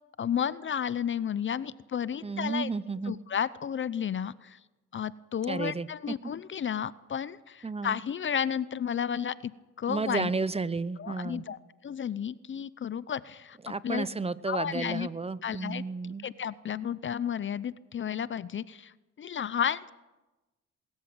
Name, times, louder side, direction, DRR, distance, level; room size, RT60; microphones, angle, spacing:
voice 1, 0.2-2.7 3.1-4.6 4.9-9.5 9.8-10.3 11.0-13.6 13.8-14.1 14.5-15.1 15.4-15.8 16.2-19.9, left 8 dB, 40° left, 18 dB, 0.7 m, -32 dB
voice 2, 2.2-3.2 5.5-5.9 7.6-8.0 9.9-11.4 13.6-16.3, right 4 dB, 20° right, 16 dB, 0.8 m, -32 dB
22.5 x 14.0 x 8.9 m, 1.1 s
cardioid pair, 90°, 30 cm